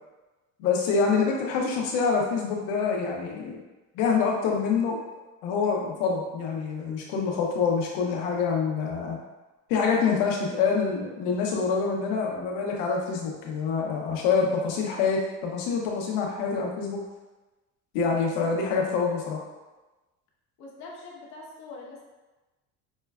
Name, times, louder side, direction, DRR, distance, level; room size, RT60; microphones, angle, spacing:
voice 1, 0.6-3.6 3.9-5.0 5.4-9.2 9.7-17.0 17.9-19.4, left 5 dB, 80° left, 0 dB, 0.9 m, -26 dB
voice 2, 20.6-22.0, left 3 dB, 55° left, -2 dB, 1.0 m, -43 dB
5.3 x 2.2 x 2.3 m, 1.1 s
cardioid pair, 135°, 33 cm